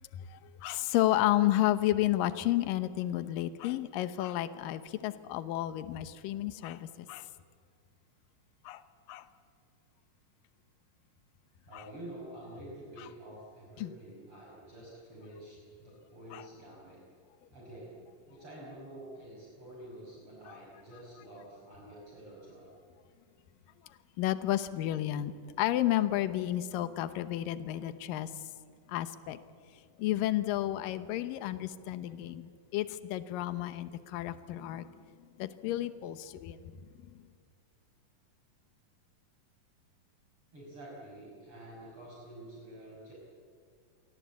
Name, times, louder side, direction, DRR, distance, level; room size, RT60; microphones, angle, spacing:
voice 1, 0.1-7.3 8.6-8.8 9.1-9.3 11.7-11.9 13.8-13.9 16.3-16.5 20.5-20.6 24.2-28.3 28.9-29.4 30.0-35.0 35.4-36.7, left 14 dB, 80° left, 12 dB, 2.6 m, -31 dB
voice 2, 11.7-17.0 17.5-18.0 18.3-22.7 40.5-43.1, right 1 dB, 40° right, -4 dB, 6.3 m, -48 dB
29.0 x 24.0 x 8.4 m, 2.1 s
omnidirectional pair, 4.0 m